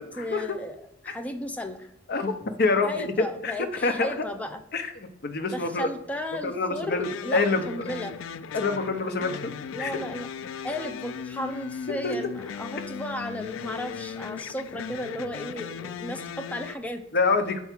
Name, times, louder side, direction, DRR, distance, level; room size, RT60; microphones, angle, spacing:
voice 1, 0.0-1.9 2.8-4.6 5.4-8.2 9.7-10.3 10.6-17.0, equal, 5° left, 5 dB, 0.5 m, -35 dB
voice 2, 2.1-3.1 3.4-3.5 3.8-4.1 4.7-5.9 6.4-7.7 8.5-9.5 9.8-9.9 12.0-12.3 17.1-17.6, left 3 dB, 55° left, 7 dB, 0.7 m, -26 dB
sound 1, 6.9-16.8, left 7 dB, 90° left, 0.3 m, -37 dB
4.6 x 4.5 x 5.8 m, 0.77 s
head